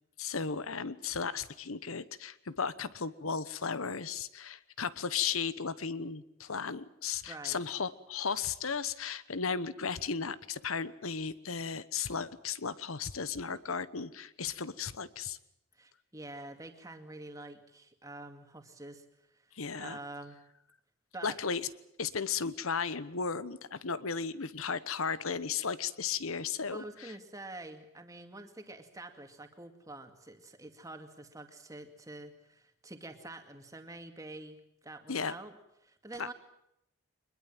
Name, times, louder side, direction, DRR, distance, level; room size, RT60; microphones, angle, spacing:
voice 1, 0.2-15.4 19.6-20.0 21.2-21.7 22.0-27.1 35.1-35.3 36.2-36.3, left 5 dB, 80° left, 16 dB, 1.1 m, -35 dB
voice 2, 7.3-7.6 15.7-20.4 21.1-21.4 26.7-36.3, right 2 dB, 15° right, 6 dB, 2.3 m, -47 dB
23.5 x 21.5 x 7.5 m, 0.81 s
head